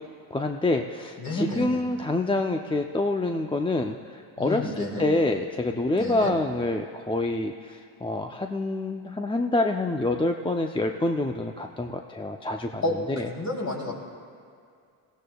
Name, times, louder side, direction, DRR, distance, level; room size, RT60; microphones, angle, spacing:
voice 1, 0.3-12.8 13.1-13.3, left 2 dB, 10° left, 4 dB, 0.5 m, -27 dB
voice 2, 1.2-1.8 4.4-5.1 6.0-6.3 12.8-13.9, left 1 dB, 35° left, -1 dB, 3.0 m, -30 dB
19.0 x 15.5 x 2.3 m, 2.3 s
supercardioid pair, 70°, 50 cm